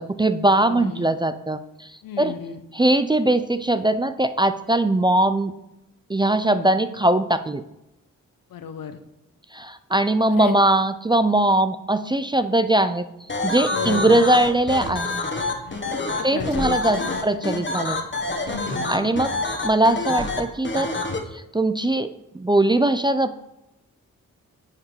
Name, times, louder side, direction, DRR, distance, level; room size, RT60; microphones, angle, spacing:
voice 1, 0.0-1.9 2.2-2.3 2.7-5.5 6.1-7.6 9.5-13.0 13.4-15.1 16.2-18.0 18.5-18.6 18.9-19.3 19.6-20.9 21.3-22.1 22.3-23.4, right 1 dB, 15° right, 11 dB, 0.4 m, -20 dB
voice 2, 0.6-1.1 2.0-2.6 8.5-9.0 10.3-10.6 13.7-14.2 15.6-17.2 18.4-19.1, left 8 dB, 75° left, 10 dB, 0.7 m, -33 dB
sound 1, 13.3-21.2, left 2 dB, 35° left, 1.2 m, -27 dB
9.4 x 4.8 x 3.2 m, 0.90 s
cardioid pair, 45°, 34 cm